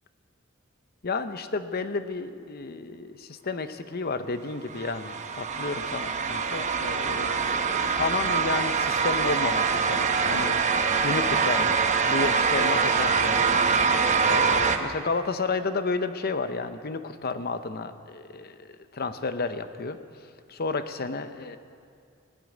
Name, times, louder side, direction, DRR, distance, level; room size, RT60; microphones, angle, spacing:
voice 1, 1.0-10.6 11.0-13.7 14.0-20.0 20.5-21.6, left 4 dB, 50° left, 10 dB, 0.8 m, -32 dB
sound 1, 4.7-14.8, right 5 dB, 35° right, 0.9 m, -24 dB
19.5 x 7.6 x 9.4 m, 2.3 s
head